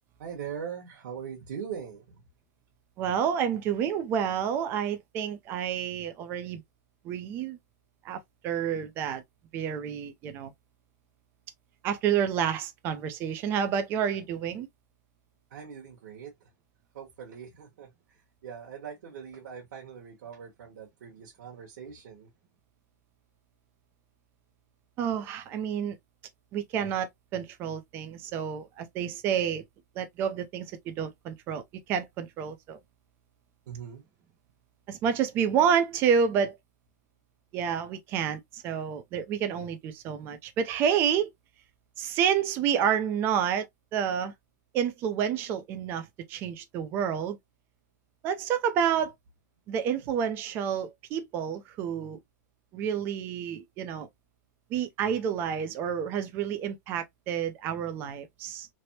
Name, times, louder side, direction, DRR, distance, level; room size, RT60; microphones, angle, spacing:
voice 1, 0.2-2.2 15.5-16.5 16.9-22.3 33.7-34.0 50.0-50.1, right 7 dB, 60° right, 1.1 m, -41 dB
voice 2, 3.0-6.6 7.0-7.6 8.0-9.2 9.5-10.5 11.8-14.7 25.0-26.0 26.5-29.6 30.0-31.6 31.9-32.8 34.9-36.6 37.5-41.3 42.0-43.7 43.9-44.3 44.7-47.4 48.2-49.1 49.7-52.2 52.7-54.1 54.7-58.7, right 8 dB, 20° right, 0.4 m, -29 dB
3.3 x 2.0 x 2.7 m
supercardioid pair, 170°, 10 cm